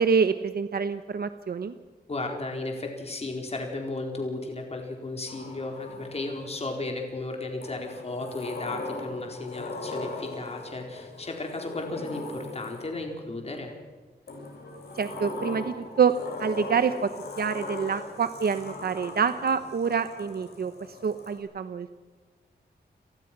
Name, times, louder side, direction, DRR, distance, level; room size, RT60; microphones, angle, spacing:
voice 1, 0.0-1.7 15.0-16.1 16.4-17.1 17.4-20.7 21.0-21.9, right 6 dB, 65° right, 10 dB, 1.0 m, -26 dB
voice 2, 2.1-13.7, left 2 dB, 35° left, 2 dB, 4.3 m, -34 dB
Sliding door, 5.3-6.6 7.6-13.2 14.3-21.4, left 3 dB, 70° left, 6.8 m, -39 dB
29.5 x 19.5 x 6.1 m, 1.4 s
wide cardioid pair, 115°, 17 cm